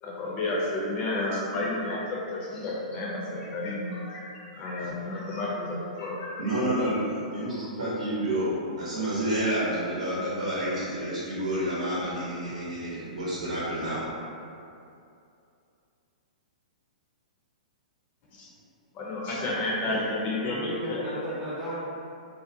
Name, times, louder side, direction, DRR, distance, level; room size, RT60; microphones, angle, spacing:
voice 1, 0.0-6.7 7.5-7.6 18.3-18.5 18.9-21.1, left 2 dB, 30° left, -4 dB, 0.6 m, -31 dB
voice 2, 6.4-14.1, right 1 dB, 70° right, -10 dB, 0.9 m, -29 dB
voice 3, 20.4-21.7, right 1 dB, 15° right, -10 dB, 0.7 m, -34 dB
2.5 x 2.1 x 2.6 m, 2.6 s
figure-of-eight pair, 110°, 4 cm